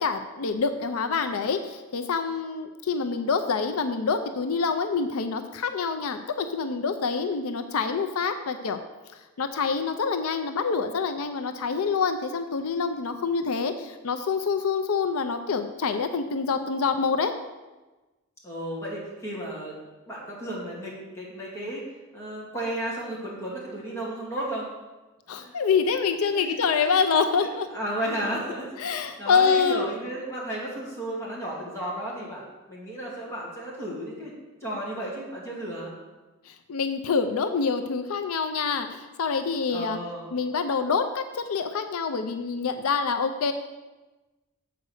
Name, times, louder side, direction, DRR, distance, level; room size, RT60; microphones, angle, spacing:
voice 1, 0.0-8.8 9.4-17.3 25.3-27.7 28.8-29.9 36.5-40.0 40.3-43.5, left 5 dB, 80° left, 8 dB, 0.5 m, -26 dB
voice 2, 18.4-19.8 20.1-21.8 22.1-24.7 25.4-25.5 26.3-26.5 26.9-27.0 27.4-34.3 34.6-35.9 39.3-39.4 39.7-40.3, right 1 dB, 10° left, -6 dB, 2.4 m, -34 dB
7.8 x 5.0 x 6.4 m, 1.2 s
head